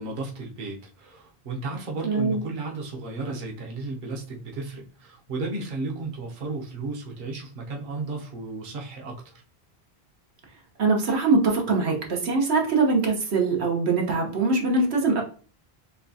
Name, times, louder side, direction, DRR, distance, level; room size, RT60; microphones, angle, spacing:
voice 1, 0.0-9.4, right 3 dB, 55° right, -1 dB, 1.0 m, -34 dB
voice 2, 2.0-2.4 10.8-15.2, right 3 dB, 85° right, 1 dB, 1.2 m, -22 dB
6.8 x 2.3 x 2.7 m, 0.40 s
omnidirectional pair, 1.1 m